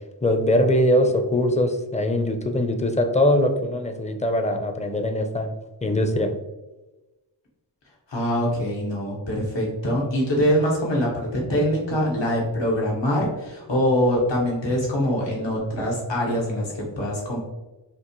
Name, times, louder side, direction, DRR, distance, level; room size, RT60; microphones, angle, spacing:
voice 1, 0.2-5.5 5.8-6.3, left 1 dB, 15° left, 5 dB, 0.6 m, -22 dB
voice 2, 8.1-17.4, equal, 85° left, -3 dB, 1.4 m, -24 dB
6.0 x 2.5 x 3.0 m, 1.1 s
wide cardioid pair, 65°, 43 cm